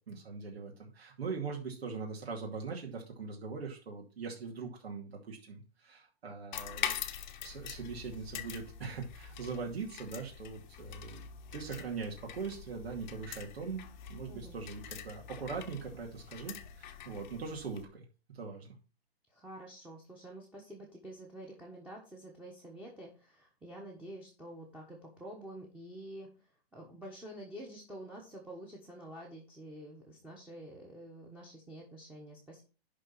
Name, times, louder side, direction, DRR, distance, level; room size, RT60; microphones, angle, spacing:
voice 1, 0.0-7.0 7.4-11.2 11.5-13.8 14.1-18.0 18.3-18.7, right 5 dB, 80° right, 0 dB, 2.5 m, -41 dB
sound 1, 6.5-17.8, left 9 dB, 45° left, 1.1 m, -44 dB
voice 2, 19.3-32.6, right 1 dB, 5° right, -3 dB, 1.3 m, -48 dB
11.0 x 4.0 x 5.5 m, 0.34 s
hypercardioid pair, 155°, 31 cm